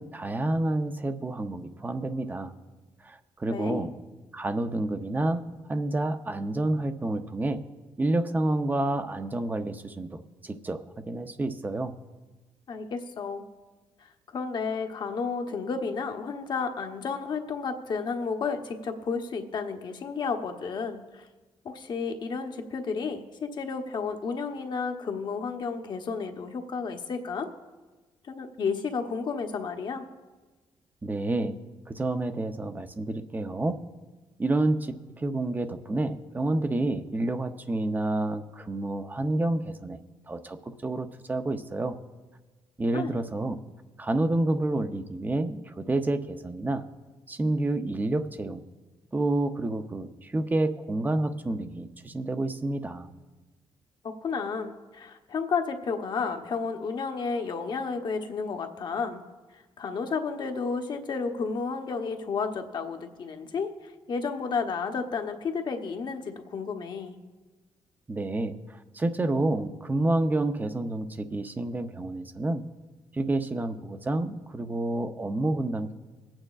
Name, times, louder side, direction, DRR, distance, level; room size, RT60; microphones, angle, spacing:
voice 1, 0.0-2.5 3.0-3.9 4.3-7.6 8.0-12.0 31.0-31.6 31.9-33.8 34.4-40.0 40.3-42.0 42.8-43.6 44.0-46.8 47.3-48.6 49.1-53.1 68.1-72.6 73.1-75.9, right 2 dB, 20° right, 9 dB, 0.6 m, -29 dB
voice 2, 3.5-3.9 12.7-13.4 14.0-21.3 21.6-27.5 28.3-30.1 42.9-43.1 54.2-59.2 59.8-67.2, left 5 dB, 55° left, 5 dB, 1.0 m, -32 dB
23.5 x 8.9 x 2.4 m, 1.2 s
cardioid pair, 115°, 9 cm